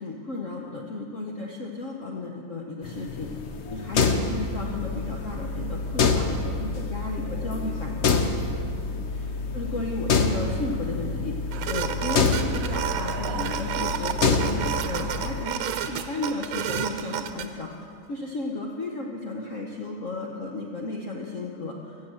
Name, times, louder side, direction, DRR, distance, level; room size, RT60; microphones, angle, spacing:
voice 1, 0.0-3.3 3.7-8.2 9.1-11.3 11.7-17.7 18.1-21.9, left 2 dB, 50° left, -1 dB, 1.0 m, -34 dB
sound 1, 2.8-15.4, left 4 dB, 85° left, 0.6 m, -27 dB
sound 2, 11.5-17.5, right 9 dB, 80° right, 1.5 m, -31 dB
15.0 x 7.1 x 7.6 m, 2.3 s
omnidirectional pair, 2.3 m